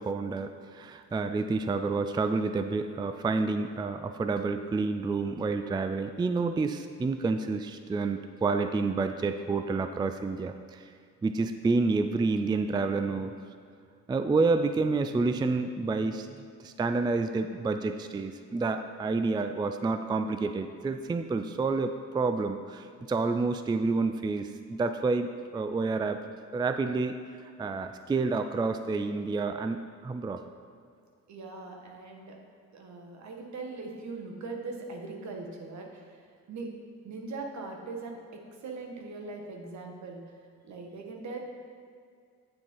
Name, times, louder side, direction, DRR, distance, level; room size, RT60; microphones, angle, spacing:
voice 1, 0.0-10.9 11.2-13.4 14.1-26.2 26.5-27.2 27.4-30.4, right 3 dB, 15° right, 8 dB, 0.3 m, -29 dB
voice 2, 31.3-32.4 32.7-36.2 36.5-36.7 37.0-38.2 38.6-40.2 40.6-41.4, right 3 dB, 65° right, 2 dB, 1.5 m, -40 dB
8.4 x 7.3 x 4.5 m, 2.3 s
cardioid pair, 90°, 30 cm